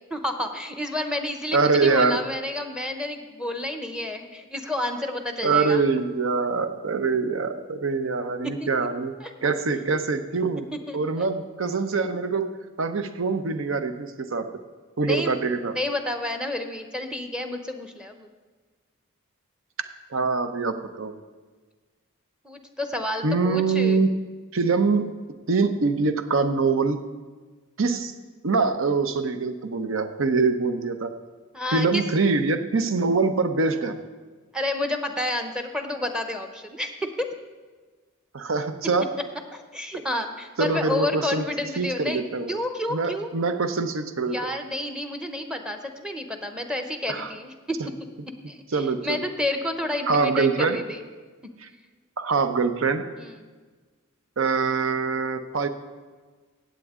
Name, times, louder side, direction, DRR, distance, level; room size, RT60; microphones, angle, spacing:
voice 1, 0.1-5.8 8.6-8.7 9.2-9.3 10.9-11.3 15.0-15.4 15.7-18.3 22.4-24.0 31.5-32.0 34.5-37.3 39.5-43.3 44.3-47.8 48.5-48.6 49.0-51.0 53.2-53.5, left 1 dB, 5° right, 6 dB, 0.7 m, -30 dB
voice 2, 1.5-2.2 5.4-9.1 9.4-10.7 10.9-12.5 12.8-14.5 15.0-15.8 20.1-21.1 23.2-24.1 24.5-25.1 25.5-27.0 27.8-28.1 28.4-31.1 31.7-34.0 38.3-39.1 40.6-41.4 41.8-42.5 42.9-44.5 47.1-47.3 48.7-49.3 50.1-50.8 52.2-53.0 54.4-55.7, right 4 dB, 70° right, 9 dB, 0.7 m, -24 dB
16.0 x 8.2 x 3.7 m, 1.4 s
head